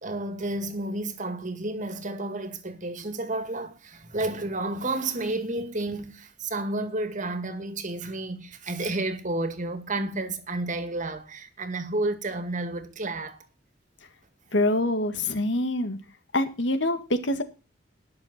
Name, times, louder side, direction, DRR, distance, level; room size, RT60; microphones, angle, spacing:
voice 1, 0.0-13.5, right 2 dB, 45° right, 2.0 m, -31 dB
voice 2, 14.5-16.0 16.3-17.4, left 1 dB, 85° left, 2.0 m, -25 dB
20.0 x 6.8 x 4.3 m
head